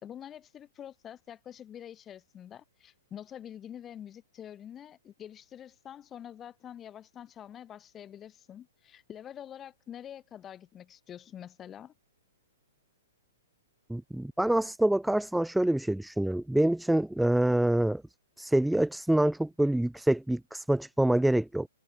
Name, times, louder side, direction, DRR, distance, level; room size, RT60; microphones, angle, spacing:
voice 1, 0.0-11.9, left 10 dB, 15° left, 5.5 m, -46 dB
voice 2, 13.9-18.0 18.4-21.7, right 1 dB, ahead, 0.4 m, -26 dB
hypercardioid pair, 155°, 0 cm